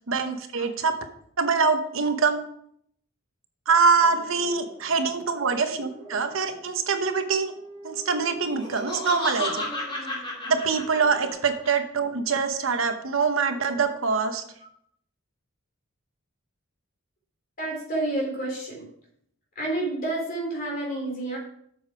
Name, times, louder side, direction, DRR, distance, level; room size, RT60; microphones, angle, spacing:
voice 1, 0.1-1.0 1.4-2.4 3.7-7.5 7.8-9.7 10.5-14.4, right 5 dB, 65° right, 8 dB, 0.9 m, -24 dB
sound 1, 3.8-11.3, right 2 dB, 20° right, 2.7 m, -45 dB
Laughter, 8.4-11.7, left 2 dB, 25° left, 3.2 m, -32 dB
voice 2, 17.6-18.9 19.6-21.4, right 2 dB, 40° left, -1 dB, 3.6 m, -29 dB
7.8 x 6.8 x 4.9 m, 0.68 s
head